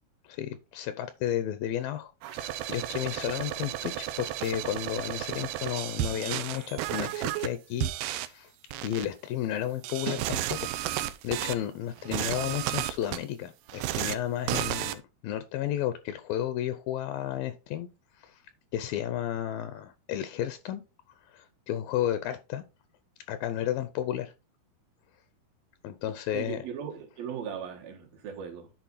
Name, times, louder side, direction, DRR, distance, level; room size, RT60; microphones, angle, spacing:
voice 1, 0.2-8.5 8.8-17.9 18.2-18.4 18.7-20.8 21.3-22.6 23.3-24.3 25.8-26.7, left 11 dB, 80° left, 2.2 m, -33 dB
sound 1, 2.2-7.5 7.8-8.3 8.7-9.1 9.8-11.6 12.0-13.2 13.7-14.2 14.5-15.0, right 14 dB, 90° right, 2.6 m, -32 dB
voice 2, 26.3-28.7, right 8 dB, 70° right, 3.2 m, -38 dB
10.5 x 4.2 x 4.0 m
omnidirectional pair, 4.4 m